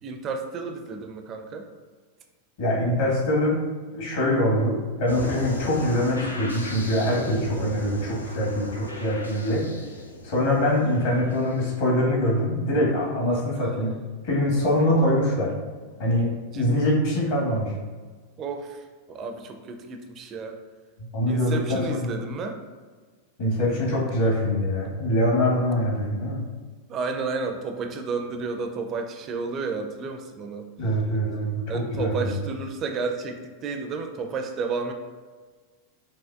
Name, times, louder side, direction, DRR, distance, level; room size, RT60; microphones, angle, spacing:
voice 1, 0.0-1.7 10.8-10.9 14.9-15.0 16.5-16.7 18.4-20.6 21.2-22.6 26.9-30.7 31.7-34.9, right 4 dB, 30° right, 5 dB, 0.4 m, -32 dB
voice 2, 2.6-3.6 3.9-9.7 10.2-13.9 14.2-15.5 16.0-17.7 21.1-22.2 23.4-26.5 30.8-32.4, left 1 dB, 55° left, -4 dB, 1.5 m, -24 dB
sound 1, 5.1-11.6, left 1 dB, 80° left, 0.5 m, -36 dB
5.5 x 2.4 x 2.4 m, 1.5 s
figure-of-eight pair, 90°, 0 cm